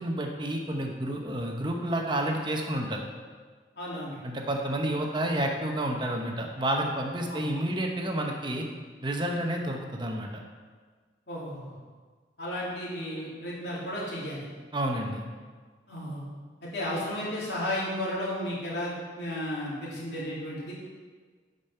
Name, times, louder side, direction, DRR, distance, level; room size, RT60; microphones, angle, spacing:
voice 1, 0.0-3.0 4.2-8.7 9.0-10.4 14.7-15.2, right 1 dB, 25° right, 2 dB, 0.8 m, -30 dB
voice 2, 3.8-4.2 7.3-7.4 11.3-11.8 12.4-14.5 15.9-16.2 16.6-20.7, left 1 dB, 65° left, -6 dB, 2.9 m, -33 dB
8.7 x 5.4 x 5.5 m, 1.5 s
head